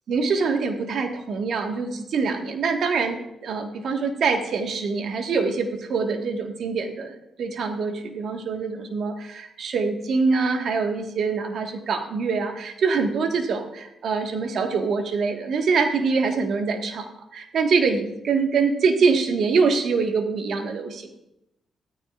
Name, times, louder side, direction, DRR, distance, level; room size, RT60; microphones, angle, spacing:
voice 1, 0.1-17.1 17.3-21.2, right 4 dB, 70° right, 4 dB, 1.6 m, -24 dB
15.5 x 13.5 x 2.5 m, 0.86 s
cardioid pair, 75°, 0 cm